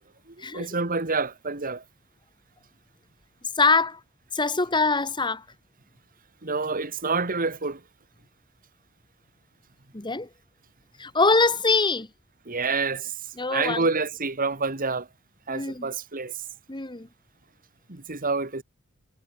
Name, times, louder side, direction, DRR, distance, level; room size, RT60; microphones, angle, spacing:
voice 1, 0.3-1.8 6.4-7.8 12.5-13.1 13.5-15.1 15.5-16.3 17.9-18.6, right 4 dB, 40° right, 2.2 m, -28 dB
voice 2, 3.6-4.0 4.3-5.4 9.9-10.3 11.0-12.1 13.4-13.8 15.5-15.9 16.7-17.1, left 3 dB, 20° left, 1.5 m, -23 dB
head